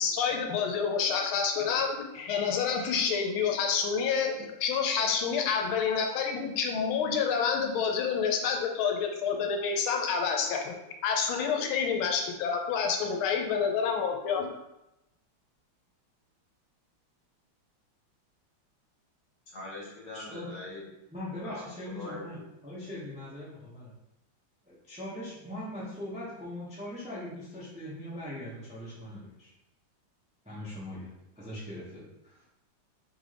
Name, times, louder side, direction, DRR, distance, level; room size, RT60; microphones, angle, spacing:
voice 1, 0.0-10.7 11.0-14.5, left 6 dB, 80° left, 3 dB, 1.4 m, -28 dB
voice 2, 19.5-20.9 21.4-22.4, left 2 dB, 55° left, -5 dB, 1.8 m, -42 dB
voice 3, 20.1-20.5 21.1-23.9 24.6-29.5 30.4-31.1 31.4-32.4, left 1 dB, 10° right, -7 dB, 0.4 m, -41 dB
3.8 x 3.4 x 3.3 m, 0.90 s
omnidirectional pair, 2.2 m